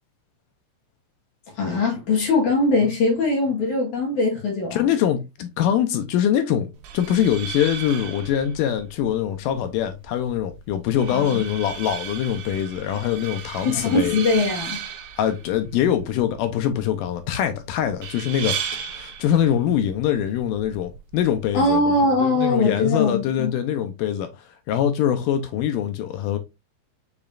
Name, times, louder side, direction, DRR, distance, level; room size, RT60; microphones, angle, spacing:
voice 1, 1.6-4.9 11.1-11.5 13.6-14.8 21.5-23.5, left 2 dB, 60° left, 2.8 m, -21 dB
voice 2, 4.7-14.1 15.2-18.6 18.9-24.3 24.7-26.4, left 10 dB, 80° left, 2.1 m, -23 dB
sound 1, 6.7-21.7, right 8 dB, 75° right, 2.0 m, -36 dB
6.9 x 3.1 x 2.4 m
omnidirectional pair, 4.1 m